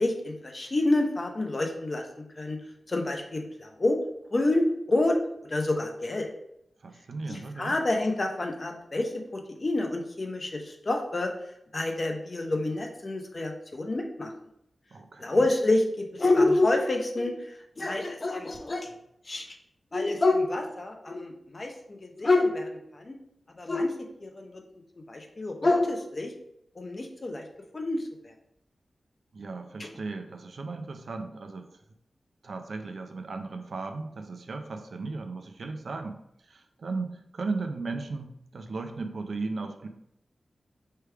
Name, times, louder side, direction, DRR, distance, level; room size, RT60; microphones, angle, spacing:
voice 1, 0.0-2.0 2.4-2.6 2.9-4.0 4.3-5.2 5.5-6.3 7.3-11.3 11.7-14.3 15.2-18.9 19.3-19.6 19.9-23.2 23.6-23.9 24.2-24.6 25.1-26.3 26.8-27.4 27.7-28.1 29.8-29.9, left 2 dB, 40° left, 3 dB, 0.7 m, -27 dB
voice 2, 6.8-7.8 14.9-15.5 29.3-31.7 32.4-36.2 36.5-39.9, right 3 dB, 70° right, 6 dB, 0.5 m, -36 dB
3.3 x 3.3 x 4.5 m, 0.76 s
wide cardioid pair, 85°, 0 cm